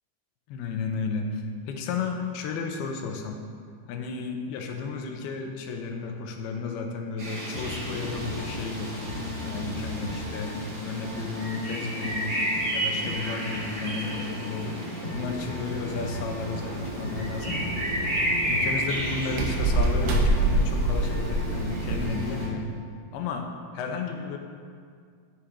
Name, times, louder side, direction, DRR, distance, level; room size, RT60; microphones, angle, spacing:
voice 1, 0.5-3.4 3.9-9.0 9.4-10.6 10.8-12.4 12.7-14.8 15.1-17.9 18.5-22.7 23.1-23.5 23.7-24.4, left 4 dB, 90° left, 3 dB, 2.7 m, -33 dB
sound 1, 7.2-22.5, equal, 40° right, 3.2 m, -33 dB
sound 2, 7.5-22.8, equal, 45° left, 1.1 m, -37 dB
sound 3, 16.8-22.1, right 2 dB, 85° right, 2.8 m, -27 dB
11.5 x 9.5 x 2.4 m, 2.1 s
omnidirectional pair, 4.6 m